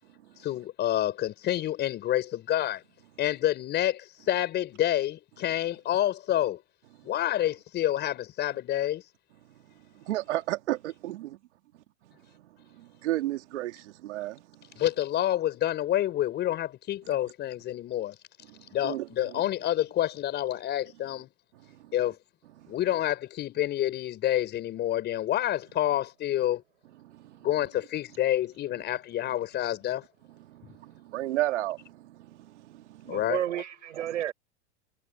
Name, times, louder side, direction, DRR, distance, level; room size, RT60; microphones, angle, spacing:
voice 1, 0.4-2.8 3.2-6.6 7.0-9.0 14.8-18.2 18.7-21.3 21.9-22.2 22.7-26.6 27.4-30.0 33.1-33.4, left 12 dB, 30° left, 5.5 m, -28 dB
voice 2, 10.1-11.3 12.8-14.4 18.8-19.1 19.3-19.4 27.2-27.4 30.5-32.3 32.7-33.0, right 15 dB, 70° right, 2.5 m, -32 dB
voice 3, 33.0-34.3, right 11 dB, 85° right, 7.0 m, -31 dB
supercardioid pair, 145°, 36 cm